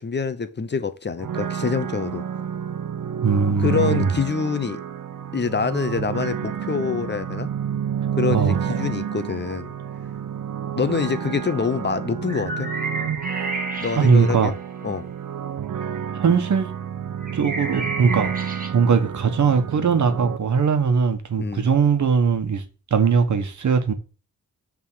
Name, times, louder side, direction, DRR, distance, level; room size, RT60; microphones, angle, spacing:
voice 1, 0.0-2.2 3.6-4.8 5.3-7.5 8.2-9.7 10.7-12.7 13.8-14.5 14.8-15.1 21.4-21.6, left 5 dB, 35° left, 0.7 m, -25 dB
sound 1, 1.2-20.4, right 8 dB, 85° right, 0.8 m, -30 dB
voice 2, 3.2-4.2 8.3-8.8 14.0-14.5 16.1-16.7 17.3-18.3 18.7-22.6 22.9-23.9, right 6 dB, 65° right, 1.3 m, -20 dB
sound 2, 12.3-14.6 17.2-18.7, right 2 dB, 25° right, 1.6 m, -31 dB
9.3 x 3.7 x 6.3 m
wide cardioid pair, 175°, 31 cm